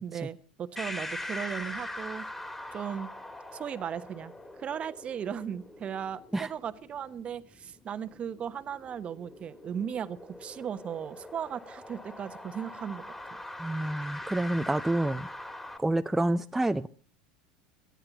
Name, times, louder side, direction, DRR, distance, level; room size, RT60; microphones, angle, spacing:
voice 1, 0.0-2.3 2.7-3.1 3.5-13.0, right 8 dB, 35° right, 1.1 m, -37 dB
sound 1, 0.8-15.8, left 1 dB, 10° left, 2.7 m, -42 dB
voice 2, 13.6-15.3 15.8-16.9, right 1 dB, 5° right, 0.6 m, -28 dB
19.0 x 13.5 x 4.0 m
hypercardioid pair, 90°, 3 cm